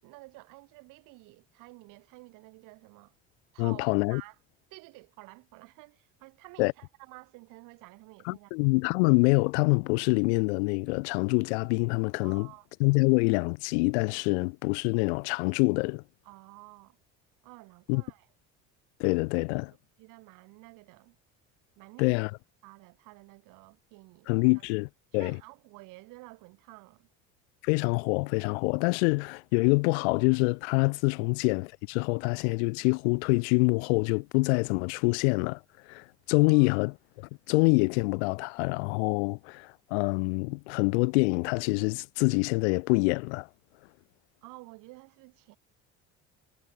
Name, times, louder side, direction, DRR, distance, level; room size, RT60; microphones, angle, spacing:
voice 1, 0.0-3.1 3.5-4.4 4.7-8.7 12.2-12.7 16.2-17.0 17.4-18.3 19.7-21.2 21.8-22.2 22.6-24.6 25.1-27.1 31.2-31.3 36.5-36.8 44.4-45.6, right 24 dB, 80° right, 6.1 m, -51 dB
voice 2, 3.6-4.2 6.6-6.7 8.3-12.5 12.8-16.0 17.9-18.0 19.0-19.7 22.0-22.3 24.3-24.9 25.1-25.4 27.6-35.6 35.9-43.5, left 30 dB, 90° left, 1.6 m, -26 dB
supercardioid pair, 95°, 32 cm